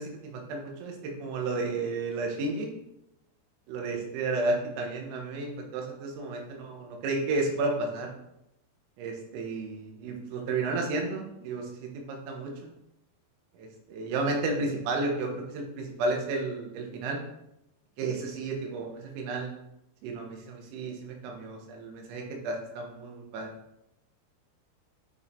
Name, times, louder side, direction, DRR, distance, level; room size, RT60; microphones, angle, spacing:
voice 1, 0.0-2.7 3.7-8.1 9.0-12.7 13.6-17.2 18.0-19.5 20.0-23.5, right 3 dB, 85° right, 1 dB, 3.8 m, -32 dB
8.8 x 5.5 x 2.8 m, 0.84 s
omnidirectional pair, 6.0 m